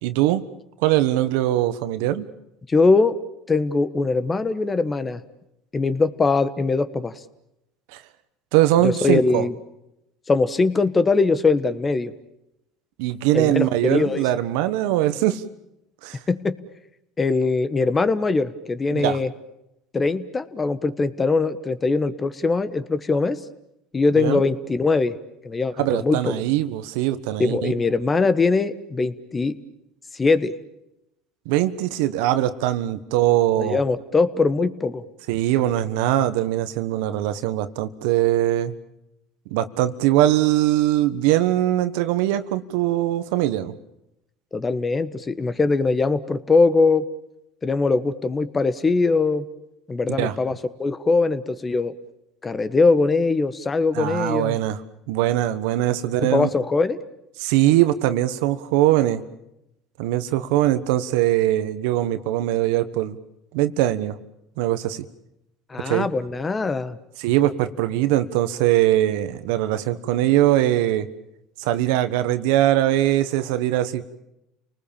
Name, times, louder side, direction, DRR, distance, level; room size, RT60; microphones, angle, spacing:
voice 1, 0.0-0.4 0.8-2.3 7.9-8.0 8.5-9.4 13.0-15.4 16.0-16.2 18.9-19.2 24.2-24.4 25.8-27.7 31.4-33.8 35.3-38.7 39.5-43.7 50.2-50.3 53.9-54.8 55.1-56.5 57.4-59.2 60.0-63.2 63.5-64.2 64.6-65.0 65.8-66.1 67.2-71.1 71.6-74.0, right 14 dB, 80° right, 12 dB, 1.3 m, -21 dB
voice 2, 2.7-3.2 3.5-5.2 5.7-7.1 8.8-9.5 10.3-12.1 13.3-14.2 16.3-16.6 17.2-19.3 19.9-23.4 23.9-25.1 25.4-26.4 27.4-29.6 30.2-30.5 33.6-35.0 44.5-47.1 47.6-49.4 49.9-51.9 52.4-54.6 56.3-57.0 65.7-67.0, left 3 dB, 25° left, 13 dB, 1.4 m, -21 dB
30.0 x 19.5 x 7.2 m, 0.86 s
supercardioid pair, 95°, 0 cm